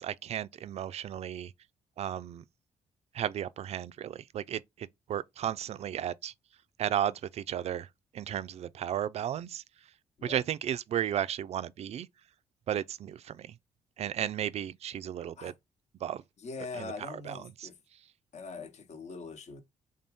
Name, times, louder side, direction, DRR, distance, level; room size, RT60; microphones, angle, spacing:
voice 1, 0.0-1.5 2.0-2.4 3.1-6.3 6.8-7.9 8.1-9.6 10.2-12.1 12.7-13.6 14.0-15.5 16.0-16.2 16.7-17.7, right 10 dB, 50° right, 0.4 m, -34 dB
voice 2, 16.4-17.8 18.3-19.6, left 4 dB, 55° left, 0.9 m, -42 dB
3.5 x 2.7 x 3.5 m
hypercardioid pair, 45°, 14 cm